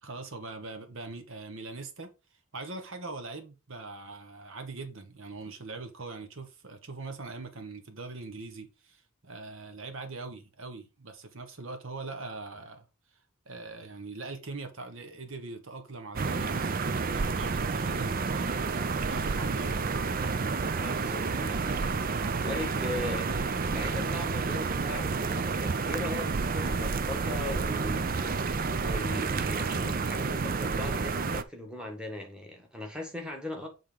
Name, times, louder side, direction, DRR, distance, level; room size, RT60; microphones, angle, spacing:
voice 1, 0.0-12.8 13.5-18.8 19.1-19.8, right 3 dB, 60° right, 1.1 m, -42 dB
sound 1, 16.2-31.4, right 4 dB, 40° right, 0.5 m, -30 dB
voice 2, 20.7-33.7, left 2 dB, 5° right, 1.6 m, -39 dB
8.0 x 3.7 x 5.1 m
head